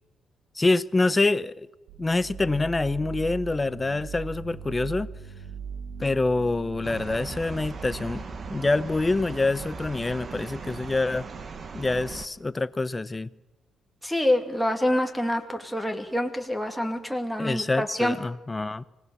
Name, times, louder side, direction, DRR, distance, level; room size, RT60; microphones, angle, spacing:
voice 1, 0.5-1.7 2.0-5.1 6.0-11.3 11.7-13.3 17.4-18.8, left 2 dB, 20° left, 0.7 m, -26 dB
sound 1, 1.9-9.6, right 6 dB, 85° right, 1.7 m, -40 dB
sound 2, 6.8-12.3, right 4 dB, 40° right, 1.7 m, -38 dB
voice 2, 14.0-18.2, left 1 dB, 5° right, 2.5 m, -26 dB
24.5 x 18.5 x 7.1 m
cardioid pair, 90°, 0 cm